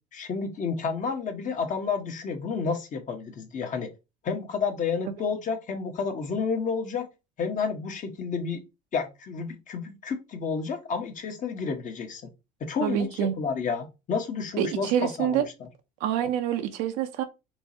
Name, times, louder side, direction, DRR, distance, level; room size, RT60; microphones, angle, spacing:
voice 1, 0.1-3.9 4.2-7.1 7.4-8.6 8.9-12.3 12.6-15.4, left 5 dB, 45° left, 1.2 m, -30 dB
voice 2, 12.8-13.3 14.6-15.4 16.0-17.2, right 10 dB, 75° right, 0.6 m, -26 dB
4.5 x 3.1 x 2.8 m
hypercardioid pair, 75°, 18 cm